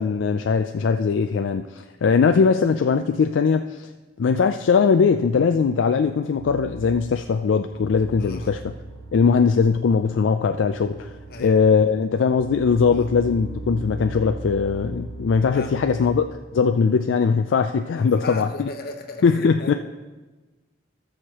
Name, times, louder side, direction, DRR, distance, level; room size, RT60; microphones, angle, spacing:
voice 1, 0.0-3.9 4.2-8.7 9.1-11.1 11.4-16.3 16.5-18.7 19.2-19.7, left 5 dB, 75° left, 7 dB, 0.4 m, -20 dB
sound 1, 6.4-7.3 7.7-11.8 12.3-16.5, right 3 dB, 75° right, 1.8 m, -39 dB
voice 2, 8.2-8.5 11.3-11.6 12.9-13.1 15.5-16.1 18.0-19.7, left 2 dB, 50° left, 4 dB, 1.0 m, -36 dB
17.5 x 6.4 x 3.0 m, 1.2 s
head